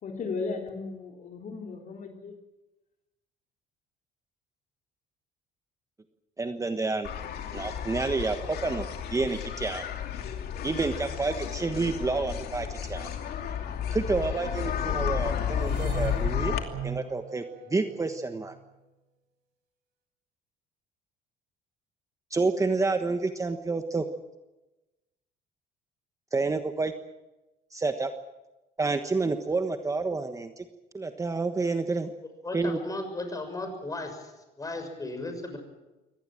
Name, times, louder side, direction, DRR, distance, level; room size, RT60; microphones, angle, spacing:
voice 1, 0.0-2.3, left 4 dB, 50° left, 3 dB, 3.3 m, -35 dB
voice 2, 6.4-7.1 7.5-9.8 10.6-13.1 13.9-16.5 16.8-17.4 17.7-18.5 22.3-24.0 26.3-26.9 27.7-28.1 28.8-30.6 30.9-32.1 32.5-32.8, right 3 dB, 20° right, 7 dB, 1.3 m, -29 dB
sound 1, 7.0-16.6, left 8 dB, 65° left, 2.8 m, -32 dB
sound 2, 15.6-18.7, right 7 dB, 85° right, 5.0 m, -39 dB
voice 3, 32.4-34.3 34.6-35.6, left 2 dB, 20° left, 6 dB, 6.6 m, -35 dB
24.0 x 18.5 x 7.6 m, 1.0 s
cardioid pair, 110°, 17 cm